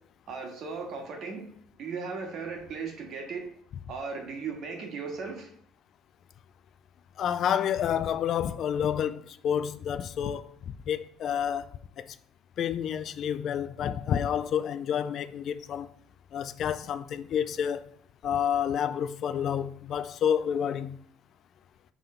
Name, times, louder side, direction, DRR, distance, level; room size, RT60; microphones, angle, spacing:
voice 1, 0.3-1.4 1.8-3.4 3.9-5.5, right 5 dB, 50° right, 1.6 m, -36 dB
voice 2, 7.2-10.5 10.9-11.6 12.6-15.9 16.3-17.8 18.2-21.0, left 9 dB, 45° left, 0.3 m, -29 dB
5.4 x 3.7 x 5.7 m
cardioid pair, 150°, 0 cm